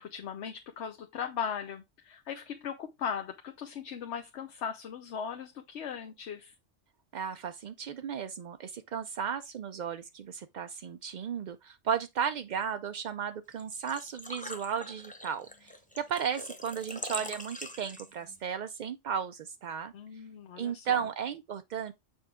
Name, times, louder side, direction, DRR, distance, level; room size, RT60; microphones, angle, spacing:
voice 1, 0.0-6.5 19.9-21.1, left 7 dB, 65° left, 1.0 m, -38 dB
voice 2, 7.1-19.9 20.6-21.9, right 7 dB, 70° right, 0.4 m, -35 dB
Engine / Trickle dribble / Fill (with liquid), 13.5-18.4, left 1 dB, 10° left, 0.7 m, -43 dB
7.0 x 4.5 x 3.6 m
omnidirectional pair, 1.3 m